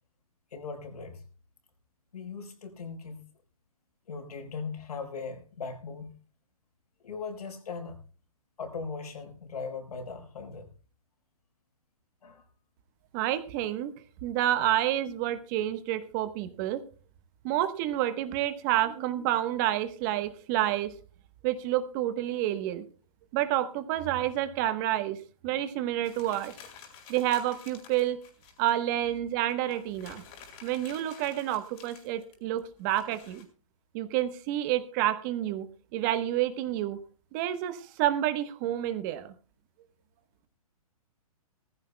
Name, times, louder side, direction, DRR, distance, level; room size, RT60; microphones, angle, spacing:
voice 1, 0.5-1.2 2.1-3.3 4.1-6.1 7.0-8.0 8.6-10.7 12.2-12.4, left 5 dB, 80° left, 6 dB, 4.4 m, -39 dB
voice 2, 13.1-13.9 14.2-16.8 17.4-20.9 21.4-22.8 23.3-25.2 25.4-26.5 27.1-28.2 28.6-30.2 30.6-33.5 33.9-35.7 35.9-37.0 37.3-39.3, right 13 dB, 30° right, 12 dB, 1.1 m, -29 dB
sound 1, 26.0-28.8 29.2-29.3 29.5-33.4, left 7 dB, 30° left, 3.7 m, -51 dB
19.0 x 15.0 x 2.2 m, 0.36 s
hypercardioid pair, 155°, 19 cm